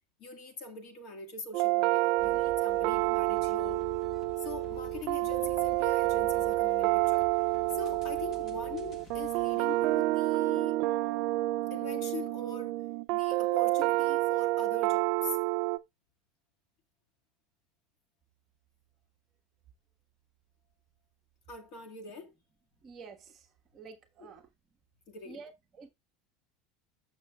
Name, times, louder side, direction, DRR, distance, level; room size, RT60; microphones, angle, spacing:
voice 1, 0.2-3.8 4.4-7.3 7.7-10.8 11.7-12.8 13.1-15.4 21.5-22.3 24.2-24.3 25.1-25.4, left 3 dB, 45° left, 1.9 m, -42 dB
sound 1, 1.5-15.8, right 19 dB, 45° right, 0.4 m, -29 dB
sound 2, 2.2-10.6, left 3 dB, 25° left, 1.7 m, -50 dB
voice 2, 22.8-23.5 23.7-24.5 25.2-25.9, right 5 dB, 20° right, 1.4 m, -49 dB
13.5 x 6.6 x 2.3 m
supercardioid pair, 180°, 0 cm